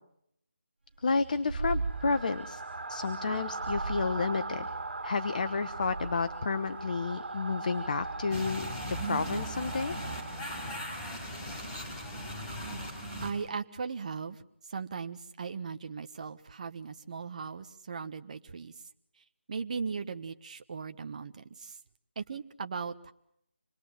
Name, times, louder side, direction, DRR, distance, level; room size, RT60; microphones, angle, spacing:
voice 1, 1.0-2.6 2.9-4.7 5.0-8.7 9.0-10.0, left 4 dB, 45° left, 10 dB, 1.2 m, -31 dB
sound 1, 1.0-11.0, right 3 dB, 65° right, 2.5 m, -38 dB
sound 2, 8.3-13.3, equal, 15° left, 4.7 m, -38 dB
voice 2, 13.2-14.4 14.7-18.7 19.5-21.8 22.2-23.1, right 5 dB, 40° right, 7 dB, 1.3 m, -38 dB
27.0 x 20.5 x 7.7 m, 0.76 s
figure-of-eight pair, 160°, 6 cm